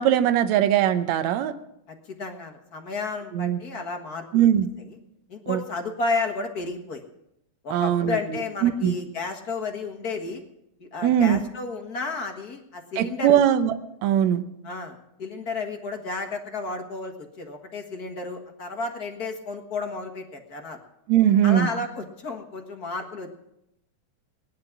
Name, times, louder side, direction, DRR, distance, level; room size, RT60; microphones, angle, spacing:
voice 1, 0.0-1.5 3.3-3.6 4.3-4.7 5.5-5.6 7.7-8.2 8.6-9.0 11.0-11.4 13.0-13.7 14.0-14.4 21.1-21.7, right 10 dB, 70° right, 11 dB, 2.0 m, -20 dB
voice 2, 1.9-4.5 4.8-5.0 5.3-7.0 7.6-10.4 10.8-13.4 14.6-20.8 21.4-23.3, left 3 dB, 40° left, 4 dB, 1.6 m, -32 dB
19.0 x 10.5 x 6.0 m, 0.83 s
omnidirectional pair, 3.4 m